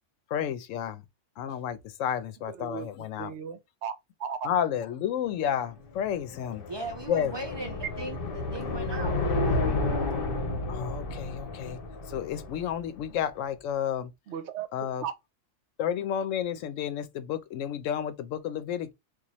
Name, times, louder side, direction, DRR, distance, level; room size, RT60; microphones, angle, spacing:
voice 1, 0.3-1.0 1.4-3.4 4.4-6.6 7.1-7.3 10.7-11.8 12.1-14.1 14.7-15.0 15.8-18.9, left 9 dB, 85° left, 1.0 m, -31 dB
voice 2, 2.5-2.9 3.2-4.5 14.3-14.7 15.0-15.1, right 7 dB, 70° right, 0.9 m, -36 dB
sound 1, 5.7-13.1, left 2 dB, 50° left, 1.0 m, -31 dB
voice 3, 6.7-10.3, right 2 dB, 35° right, 0.5 m, -39 dB
3.0 x 2.5 x 4.0 m
omnidirectional pair, 1.3 m